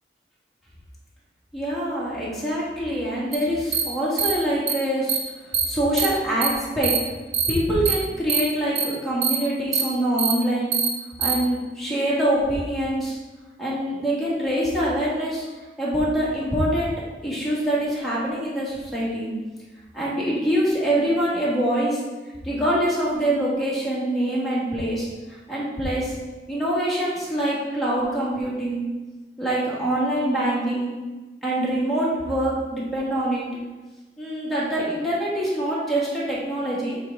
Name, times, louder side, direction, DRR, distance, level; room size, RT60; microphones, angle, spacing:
voice 1, 1.5-5.2 5.7-6.9 7.5-10.7 11.2-13.2 13.6-15.4 15.8-16.9 17.2-19.3 19.9-22.0 22.4-25.1 25.5-26.1 26.5-28.8 29.4-30.9 31.4-33.4 34.2-37.0, right 1 dB, ahead, -8 dB, 1.7 m, -24 dB
sound 1, 3.3-3.4 3.7-3.8 4.2-4.3 4.7-4.8 5.1-5.2 5.5-5.6 6.0-6.1 6.4-6.5 6.8-7.0 7.3-7.5 7.8-7.9 8.3-8.4 8.7-8.8 9.2-9.3 9.7-9.8 10.2-10.3 10.7-10.9 11.2-11.3, right 8 dB, 85° right, 0.8 m, -22 dB
7.7 x 3.5 x 3.8 m, 1.2 s
head